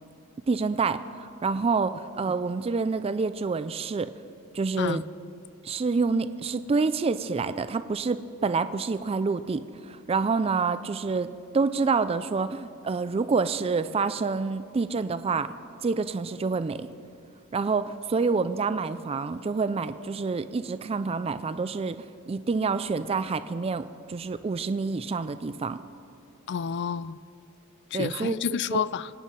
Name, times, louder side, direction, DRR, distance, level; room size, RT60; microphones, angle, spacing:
voice 1, 0.5-4.1 4.5-5.0 5.6-15.5 15.8-16.9 17.5-22.0 22.3-25.8 27.9-28.4 28.7-28.8, right 4 dB, 25° right, 12 dB, 0.3 m, -27 dB
voice 2, 26.5-27.2 27.9-29.1, left 7 dB, 55° left, 18 dB, 0.4 m, -29 dB
24.5 x 9.2 x 5.5 m, 2.5 s
head